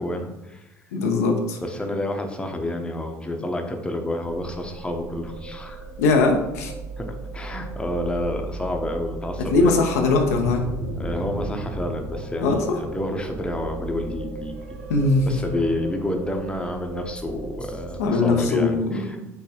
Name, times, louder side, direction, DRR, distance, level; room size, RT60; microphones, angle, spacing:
voice 1, 0.0-0.7 1.6-5.9 7.0-9.8 11.0-14.8 15.3-19.3, left 1 dB, 10° left, 3 dB, 0.7 m, -29 dB
voice 2, 0.9-1.6 6.0-6.7 9.4-10.6 12.4-12.6 14.9-15.4 18.0-19.0, left 3 dB, 75° left, 2 dB, 0.6 m, -20 dB
sound 1, 4.2-18.1, right 2 dB, 70° right, 0.6 m, -35 dB
5.5 x 3.1 x 2.9 m, 0.93 s
figure-of-eight pair, 55°, 8 cm